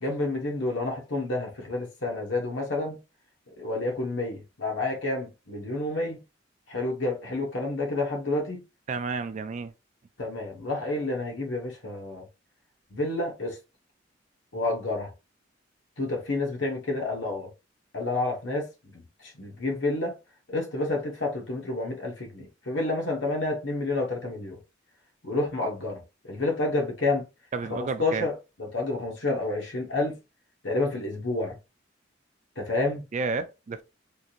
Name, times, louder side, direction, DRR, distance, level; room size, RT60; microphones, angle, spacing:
voice 1, 0.0-3.0 3.6-6.2 6.7-8.6 10.2-12.2 12.9-13.6 14.5-15.1 16.0-17.5 17.9-20.1 20.5-24.6 25.2-27.2 27.8-28.3 28.6-30.2 30.6-31.6 32.6-33.0, left 2 dB, 85° left, 1.3 m, -29 dB
voice 2, 8.9-9.7 27.5-28.3 33.1-33.8, right 4 dB, 40° right, 0.4 m, -31 dB
3.6 x 2.5 x 2.8 m
head